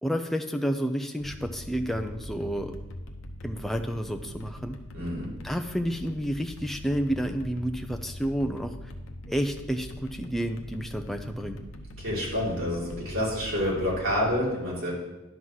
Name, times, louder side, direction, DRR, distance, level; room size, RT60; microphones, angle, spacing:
voice 1, 0.0-2.7 3.4-4.8 5.4-8.7 9.3-11.6, equal, ahead, 5 dB, 0.4 m, -30 dB
sound 1, 1.2-14.4, left 1 dB, 65° left, 0.8 m, -42 dB
voice 2, 4.9-5.3 12.0-14.9, left 1 dB, 65° right, -6 dB, 3.4 m, -28 dB
11.0 x 4.0 x 6.1 m, 1.0 s
head